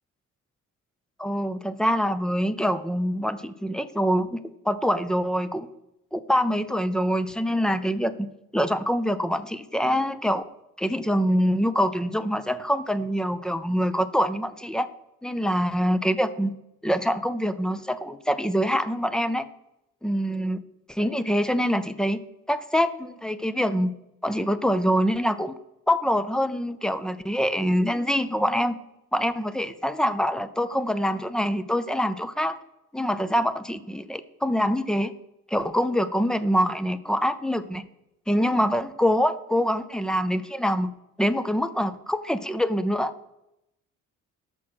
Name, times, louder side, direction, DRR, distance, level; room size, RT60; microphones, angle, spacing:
voice 1, 1.2-4.4 4.7-5.7 6.1-8.3 8.5-10.4 10.8-14.9 15.2-16.5 16.8-19.5 20.0-20.6 20.9-22.2 22.5-23.9 24.2-25.6 25.9-28.7 29.1-32.6 32.9-35.1 35.5-37.8 38.3-40.9 41.2-43.1, equal, ahead, 13 dB, 0.4 m, -25 dB
13.5 x 5.9 x 6.2 m, 0.87 s
cardioid pair, 175°, 31 cm